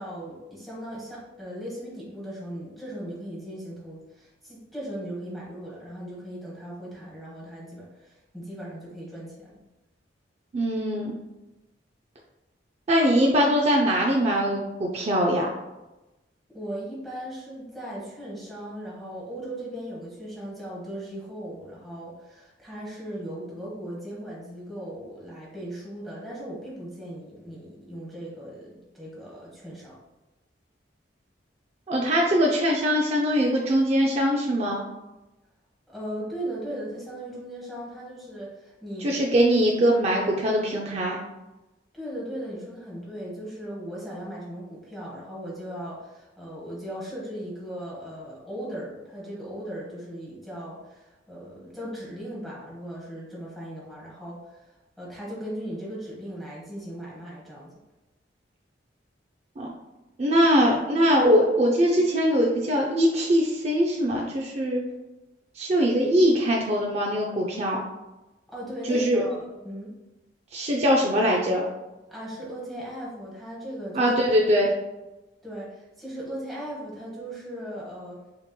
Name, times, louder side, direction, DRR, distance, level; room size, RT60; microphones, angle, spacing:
voice 1, 0.0-9.6 16.5-30.0 35.9-39.2 41.9-54.7 55.0-57.7 68.5-69.9 72.1-74.1 75.4-78.2, right 1 dB, ahead, -7 dB, 1.2 m, -38 dB
voice 2, 10.5-11.1 12.9-15.5 31.9-34.8 39.0-41.2 59.6-59.7 60.2-64.8 65.5-67.8 68.9-69.2 70.5-71.7 73.9-74.7, equal, 35° right, -2 dB, 0.4 m, -22 dB
6.8 x 2.9 x 2.2 m, 1.0 s
head